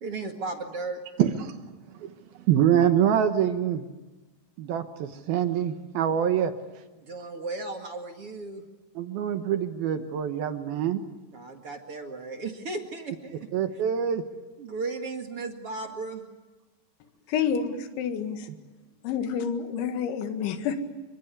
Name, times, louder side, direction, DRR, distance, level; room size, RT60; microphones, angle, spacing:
voice 1, 0.0-1.0 7.0-8.6 11.3-13.5 14.6-16.2, right 3 dB, 45° right, 4 dB, 1.9 m, -35 dB
voice 2, 1.2-1.5 2.0-3.9 4.6-6.5 9.0-11.0 13.5-14.2, right 9 dB, 70° right, 8 dB, 2.6 m, -25 dB
voice 3, 17.3-18.5 19.0-20.8, left 7 dB, 80° left, 7 dB, 4.1 m, -29 dB
27.5 x 25.0 x 8.4 m, 1.2 s
omnidirectional pair, 5.3 m